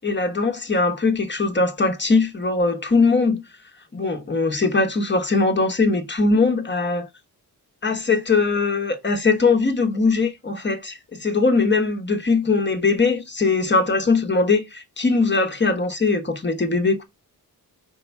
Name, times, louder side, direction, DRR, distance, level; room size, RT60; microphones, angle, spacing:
voice 1, 0.0-3.4 3.9-7.1 7.8-17.0, left 3 dB, 30° left, 1.1 m, -21 dB
5.2 x 3.5 x 5.3 m
wide cardioid pair, 140°, 36 cm